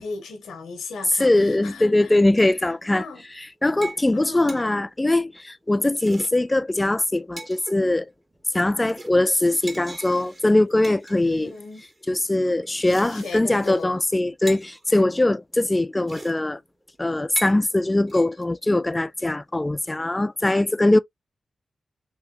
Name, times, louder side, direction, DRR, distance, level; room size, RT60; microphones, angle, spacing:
voice 1, 0.0-2.2 2.6-3.2 4.1-4.6 11.2-11.8 13.1-14.0, left 4 dB, 85° left, 1.0 m, -37 dB
voice 2, 1.2-3.1 3.3-8.1 8.5-11.5 12.1-16.6 17.0-21.0, left 2 dB, 25° left, 0.4 m, -21 dB
sound 1, 3.2-3.5 3.8-4.0 4.3-4.6 5.8-6.3 6.8-6.9 7.2-7.8 8.3-8.6 8.9-11.9 12.6-13.9 14.1-14.2 14.5-14.9 15.8-15.9 16.1-16.3 16.6-16.7 17.2-17.6 18.1-18.5, right 2 dB, 45° right, 1.8 m, -40 dB
3.3 x 3.0 x 2.9 m
supercardioid pair, 40°, 0 cm